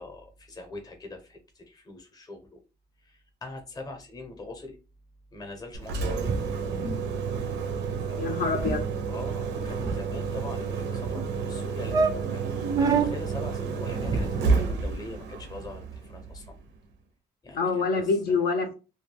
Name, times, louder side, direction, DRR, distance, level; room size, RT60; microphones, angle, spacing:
voice 1, 0.0-2.6 3.0-4.8 5.3-6.1 8.1-8.4 9.1-16.6 17.4-18.4, left 2 dB, 20° left, 0.7 m, -42 dB
Engine, 5.7-16.7, right 5 dB, 85° right, 0.5 m, -31 dB
sound 1, 6.2-7.0 7.3-7.5 7.8-8.0 8.2-8.3 8.5-8.8 9.4-10.5 11.1-11.2 11.6-11.7 11.9-13.1 13.9-14.9, right 4 dB, 20° right, 0.3 m, -28 dB
voice 2, 8.2-8.9 17.5-18.7, left 4 dB, 65° left, 0.6 m, -26 dB
2.3 x 2.2 x 3.2 m
cardioid pair, 110°, 18 cm